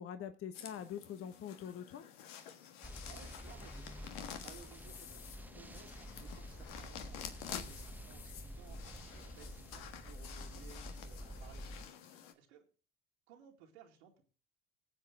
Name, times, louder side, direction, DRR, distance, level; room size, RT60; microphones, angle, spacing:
voice 1, 0.0-2.1, left 9 dB, 40° left, 9 dB, 1.1 m, -44 dB
sound 1, 0.5-12.3, left 9 dB, 65° left, 1.5 m, -50 dB
sound 2, 2.8-11.8, equal, 5° right, 1.1 m, -49 dB
voice 2, 3.1-12.7 13.3-14.2, right 8 dB, 75° right, 1 dB, 2.3 m, -60 dB
20.0 x 7.6 x 3.7 m, 0.34 s
hypercardioid pair, 65°, 33 cm